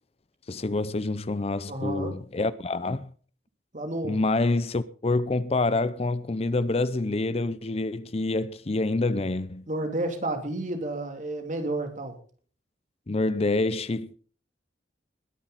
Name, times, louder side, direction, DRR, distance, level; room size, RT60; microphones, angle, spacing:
voice 1, 0.5-3.1 4.0-9.6 13.1-14.2, left 2 dB, 35° left, 0.6 m, -27 dB
voice 2, 1.7-2.2 3.7-4.2 9.7-12.1, right 1 dB, 45° right, 2.9 m, -31 dB
21.0 x 10.0 x 4.1 m
head